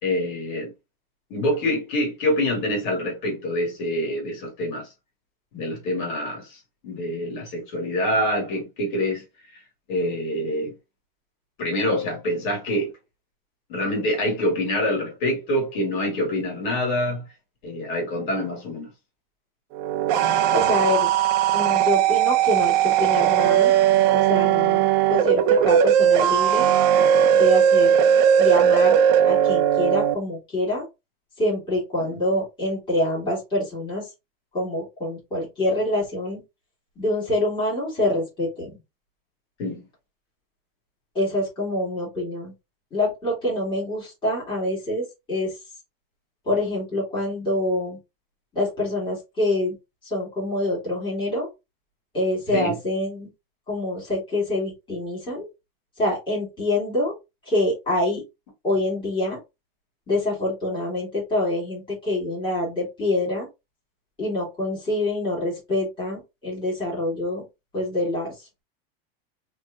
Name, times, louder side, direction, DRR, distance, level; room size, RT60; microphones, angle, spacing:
voice 1, 0.0-0.7 1.3-4.9 5.5-9.2 9.9-10.7 11.6-12.9 13.7-17.3 17.6-18.9 32.0-32.2 39.6-39.8 52.5-52.8, left 1 dB, 55° left, 2.6 m, -26 dB
sound 1, 19.7-30.1, right 9 dB, 45° right, 0.6 m, -18 dB
voice 2, 20.5-21.1 21.5-23.7 24.1-26.7 27.3-27.9 28.4-29.0 29.2-30.8 31.4-34.0 34.5-36.4 37.0-38.8 41.1-42.5 42.9-45.5 46.5-48.0 48.5-49.7 50.0-51.5 52.1-53.3 53.7-55.5 56.0-57.1 57.5-58.2 58.6-59.4 60.1-63.5 64.2-67.4 67.7-68.3, left 1 dB, 15° left, 2.7 m, -26 dB
5.1 x 3.2 x 2.5 m
supercardioid pair, 165°, 29 cm